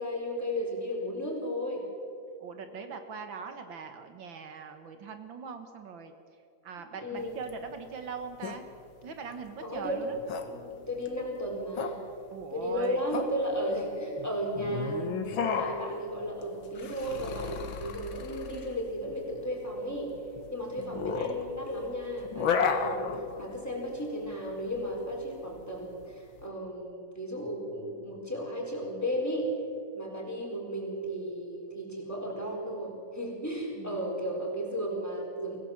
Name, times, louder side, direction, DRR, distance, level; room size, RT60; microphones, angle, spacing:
voice 1, 0.0-1.9 7.0-7.4 9.6-12.1 12.5-20.2 20.5-29.6 29.9-35.6, equal, 10° left, -1 dB, 4.5 m, -34 dB
voice 2, 2.4-6.1 6.6-8.6 9.0-10.2 12.3-13.0 20.8-21.3 33.8-34.3, right 6 dB, 75° right, 7 dB, 2.1 m, -41 dB
sound 1, 7.2-26.4, left 6 dB, 85° left, 2.2 m, -35 dB
24.5 x 16.5 x 7.4 m, 2.4 s
omnidirectional pair, 2.1 m